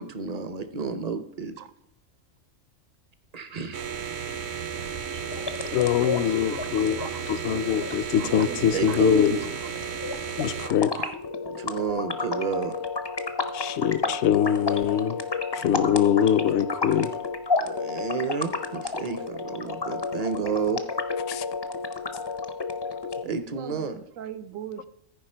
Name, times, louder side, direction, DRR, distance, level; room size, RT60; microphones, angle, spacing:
voice 1, 0.0-1.5 3.3-3.8 5.1-5.2 8.7-9.4 11.6-12.8 17.6-20.8 23.2-24.0, right 6 dB, 45° right, 0.6 m, -30 dB
sound 1, 3.7-10.7, right 7 dB, 60° right, 0.9 m, -34 dB
sound 2, 5.2-23.2, left 4 dB, 40° left, 0.4 m, -32 dB
voice 2, 5.7-9.4 10.4-11.0 13.5-15.2 15.5-17.1 21.3-21.5, left 9 dB, 65° left, 0.8 m, -23 dB
voice 3, 6.3-7.2 7.5-7.6 8.2-9.1 10.6-11.1 23.2-24.9, right 10 dB, 85° right, 1.1 m, -39 dB
14.5 x 4.8 x 4.4 m
omnidirectional pair, 1.3 m